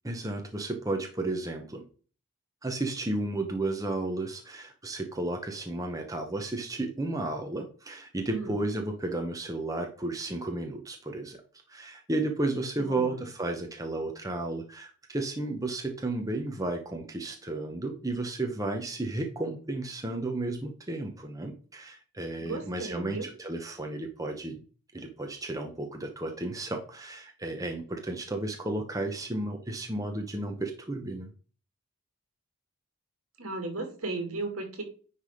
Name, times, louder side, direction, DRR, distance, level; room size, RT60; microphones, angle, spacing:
voice 1, 0.0-1.8 2.6-11.4 11.7-24.6 24.9-31.3, right 2 dB, 15° right, 3 dB, 0.9 m, -33 dB
voice 2, 8.3-8.6 12.7-13.2 22.4-23.3 33.4-34.8, right 3 dB, 75° right, 4 dB, 2.4 m, -35 dB
9.9 x 3.5 x 4.9 m, 0.39 s
head